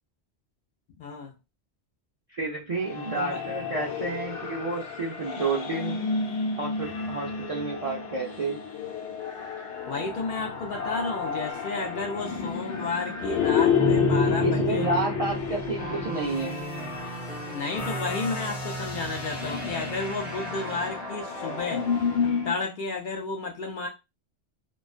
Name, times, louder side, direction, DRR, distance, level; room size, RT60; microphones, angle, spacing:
voice 1, 1.0-1.3 3.2-3.4 9.9-14.9 17.5-21.9 22.2-23.9, left 3 dB, 60° left, 0.6 m, -32 dB
voice 2, 2.3-6.0 6.6-8.6 14.4-16.6, right 3 dB, 55° right, 0.4 m, -30 dB
sound 1, 2.8-22.6, left 5 dB, 85° left, 1.0 m, -30 dB
sound 2, 15.8-22.0, right 2 dB, ahead, 0.8 m, -37 dB
2.3 x 2.2 x 2.4 m
omnidirectional pair, 1.1 m